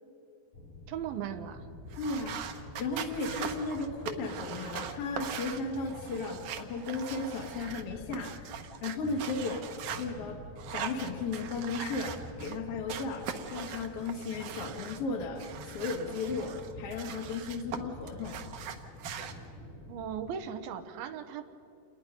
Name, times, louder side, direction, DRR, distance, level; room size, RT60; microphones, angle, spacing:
sound 1, 0.5-20.3, left 1 dB, 75° left, 5.5 m, -48 dB
voice 1, 0.9-1.7 19.9-21.4, right 8 dB, 80° right, 9 dB, 2.9 m, -37 dB
sound 2, 1.9-10.0 10.6-12.6 12.9-15.0 15.4-17.8 18.1-19.3, right 8 dB, 65° right, 2.3 m, -41 dB
voice 2, 2.0-2.4 2.8-10.4 10.7-18.4, left 3 dB, 50° left, 1 dB, 2.0 m, -35 dB
28.5 x 21.0 x 5.3 m, 2.8 s
omnidirectional pair, 4.3 m